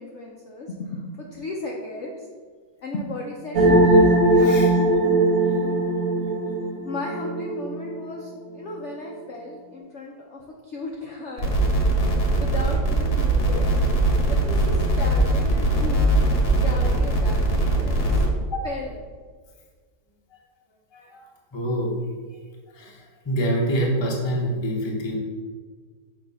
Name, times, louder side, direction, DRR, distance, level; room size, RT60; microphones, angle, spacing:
voice 1, 0.0-2.3 2.8-3.9 4.3-5.0 6.8-11.6 12.0-13.7 14.3-18.2 18.6-19.0, left 2 dB, 60° left, -1 dB, 0.8 m, -35 dB
sound 1, 3.5-8.0, right 1 dB, 55° right, 1.3 m, -19 dB
voice 2, 4.3-4.7 5.7-5.8 18.5-18.6 20.9-21.2 21.5-22.0 22.7-25.2, right 1 dB, 20° left, -2 dB, 0.7 m, -26 dB
sound 2, 11.4-18.3, right 2 dB, 40° left, 1.1 m, -21 dB
6.6 x 2.8 x 5.4 m, 1.6 s
omnidirectional pair, 1.8 m